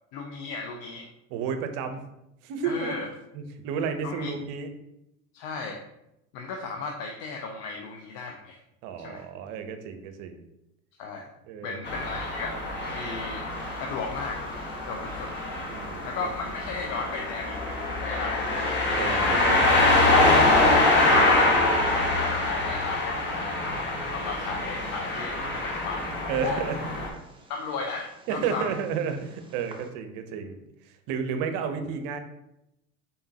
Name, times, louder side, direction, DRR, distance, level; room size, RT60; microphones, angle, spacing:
voice 1, 0.1-1.1 2.6-3.1 4.0-4.3 5.3-5.8 6.3-8.6 9.0-9.2 11.0-11.2 11.6-12.7 12.9-13.4 13.8-14.4 14.9-15.3 16.0-18.8 20.5-23.5 24.1-26.6 27.5-28.8, left 4 dB, 60° left, 2 dB, 0.6 m, -35 dB
voice 2, 1.3-2.0 2.4-2.9 3.3-4.7 8.8-10.4 11.5-11.8 15.7-16.1 19.0-19.9 20.3-20.7 26.3-26.8 28.3-30.6 30.9-32.2, right 6 dB, 55° right, 7 dB, 0.7 m, -32 dB
sound 1, 11.8-27.1, left 2 dB, 30° left, 1.2 m, -25 dB
Bird, 13.5-29.9, right 2 dB, 15° right, 0.7 m, -41 dB
4.1 x 3.7 x 2.8 m, 0.84 s
hypercardioid pair, 85°, 37 cm